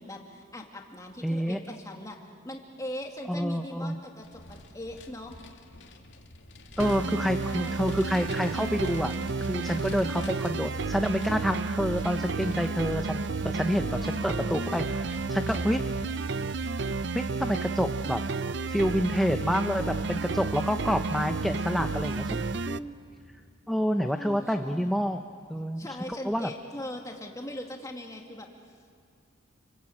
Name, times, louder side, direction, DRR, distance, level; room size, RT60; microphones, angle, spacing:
voice 1, 0.0-2.2 2.4-5.4 7.0-7.9 13.8-14.6 24.1-25.0 25.8-29.0, left 1 dB, 15° left, 1 dB, 2.4 m, -41 dB
voice 2, 1.2-1.6 3.3-4.0 6.8-9.1 9.5-15.8 17.1-18.2 18.7-22.4 22.7-23.0 23.7-25.2 25.5-26.5, equal, ahead, 5 dB, 0.7 m, -28 dB
Vehicle, 4.2-21.1, left 1 dB, 65° left, 2.3 m, -49 dB
sound 1, 6.8-22.8, right 4 dB, 60° right, 0.6 m, -31 dB
29.5 x 23.0 x 8.7 m, 2.2 s
head